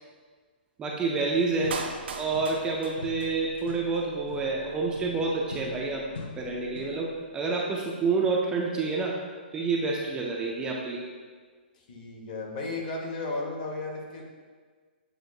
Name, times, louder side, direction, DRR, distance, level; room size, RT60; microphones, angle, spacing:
voice 1, 0.8-1.8 2.1-6.0 6.4-7.1 7.3-9.2 9.5-11.0, right 4 dB, 15° right, -2 dB, 0.3 m, -28 dB
sound 1, 1.6-2.7 3.0-7.1, left 3 dB, 75° left, 0.6 m, -43 dB
Clapping, 1.7-3.7 4.0-4.1, right 4 dB, 75° right, 0.5 m, -38 dB
voice 2, 11.8-14.2, left 3 dB, 50° left, 0 dB, 1.0 m, -34 dB
7.4 x 2.7 x 2.6 m, 1.5 s
hypercardioid pair, 155°, 6 cm